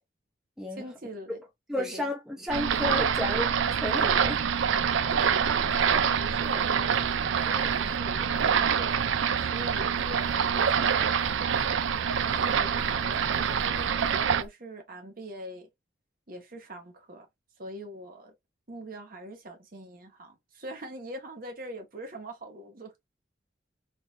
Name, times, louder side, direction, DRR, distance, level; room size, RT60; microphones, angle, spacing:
voice 1, 0.7-1.4 1.8-2.1 4.8-11.2 12.2-15.7 16.3-17.3 17.6-18.3 18.7-22.9, right 1 dB, 50° right, 1.1 m, -43 dB
voice 2, 1.7-4.4, left 1 dB, 5° right, 0.6 m, -32 dB
sound 1, 2.5-14.5, equal, 55° left, 1.1 m, -43 dB
sound 2, 2.5-14.4, right 7 dB, 85° right, 0.4 m, -26 dB
3.8 x 2.6 x 2.4 m
head